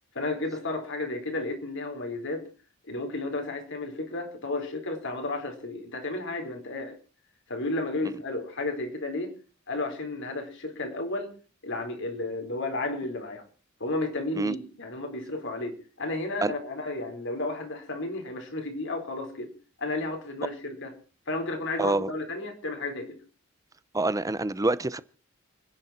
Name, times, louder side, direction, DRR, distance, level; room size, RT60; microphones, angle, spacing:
voice 1, 0.1-2.5 2.9-7.0 7.5-9.3 9.7-11.3 11.6-13.4 13.8-19.5 19.8-20.9 21.3-23.2, left 2 dB, 60° left, 4.4 m, -32 dB
voice 2, 21.8-22.1 23.9-25.0, right 2 dB, 15° right, 0.7 m, -26 dB
29.0 x 10.5 x 4.3 m
head